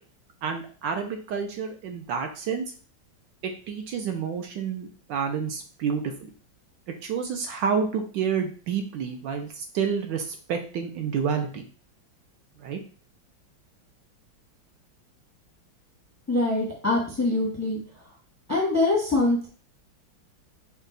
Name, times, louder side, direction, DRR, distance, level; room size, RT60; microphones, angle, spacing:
voice 1, 0.4-2.6 3.4-6.3 7.0-11.6 12.6-12.8, right 6 dB, 75° right, 5 dB, 1.2 m, -29 dB
voice 2, 16.3-17.8 18.5-19.5, left 2 dB, 15° left, -2 dB, 0.5 m, -24 dB
5.4 x 2.3 x 3.8 m, 0.41 s
omnidirectional pair, 2.2 m